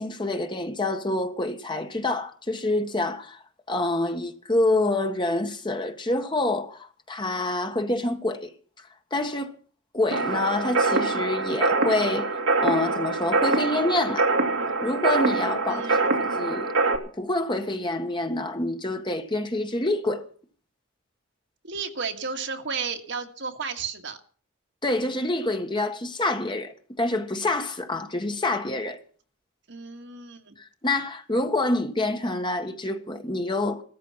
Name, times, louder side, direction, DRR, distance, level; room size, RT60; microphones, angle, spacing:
voice 1, 0.0-8.5 9.1-9.5 9.9-14.3 14.8-16.7 17.2-20.2 24.8-29.0 30.6-33.8, left 2 dB, 25° left, 1.5 m, -27 dB
sound 1, 10.1-17.0, right 3 dB, 80° right, 2.5 m, -24 dB
voice 2, 15.7-16.1 21.6-24.2 29.7-30.5, right 5 dB, 60° right, 2.0 m, -33 dB
16.5 x 13.5 x 5.8 m
head